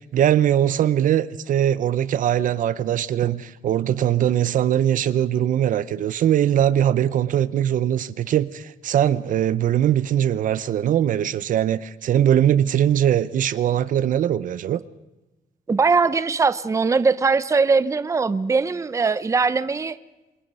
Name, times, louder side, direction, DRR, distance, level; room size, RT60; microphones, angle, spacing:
voice 1, 0.0-14.8, right 10 dB, 60° right, 0.7 m, -21 dB
voice 2, 15.7-20.0, right 4 dB, 20° right, 0.7 m, -20 dB
27.0 x 22.0 x 5.5 m
cardioid pair, 130°, 15 cm